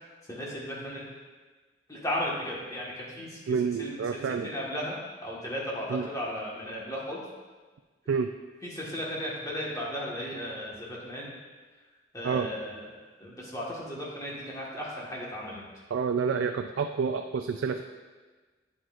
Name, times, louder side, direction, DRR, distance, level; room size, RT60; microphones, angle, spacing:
voice 1, 0.3-1.0 1.9-3.4 3.8-4.9 5.2-7.2 8.6-11.3 12.1-12.8 13.2-15.6, equal, 20° left, -5 dB, 1.6 m, -35 dB
voice 2, 3.5-4.5 5.9-6.1 8.1-8.3 12.2-12.5 15.9-17.8, right 5 dB, 85° right, 6 dB, 0.3 m, -28 dB
9.1 x 7.8 x 2.5 m, 1.3 s
head